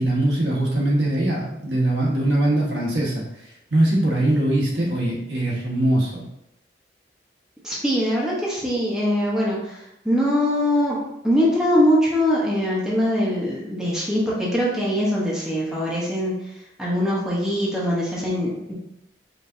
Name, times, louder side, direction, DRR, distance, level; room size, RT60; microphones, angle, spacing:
voice 1, 0.0-3.2 3.7-6.2, right 1 dB, 80° right, -5 dB, 1.5 m, -21 dB
voice 2, 7.6-11.0 11.2-16.3 16.8-18.7, equal, 5° right, -6 dB, 1.0 m, -22 dB
5.0 x 3.3 x 2.7 m, 0.81 s
head